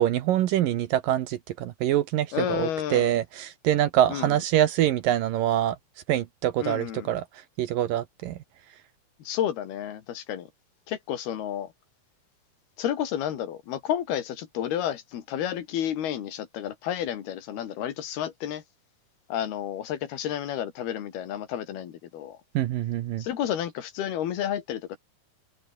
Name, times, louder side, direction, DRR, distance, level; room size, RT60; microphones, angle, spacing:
voice 1, 0.0-5.8 6.1-7.2 7.6-8.4 22.5-23.2, right 12 dB, 70° right, 2.6 m, -25 dB
voice 2, 2.3-3.1 4.1-4.4 6.6-7.1 9.2-10.5 10.9-11.7 12.8-18.6 19.3-22.4 23.2-25.0, left 10 dB, 90° left, 4.1 m, -31 dB
open air
omnidirectional pair, 4.4 m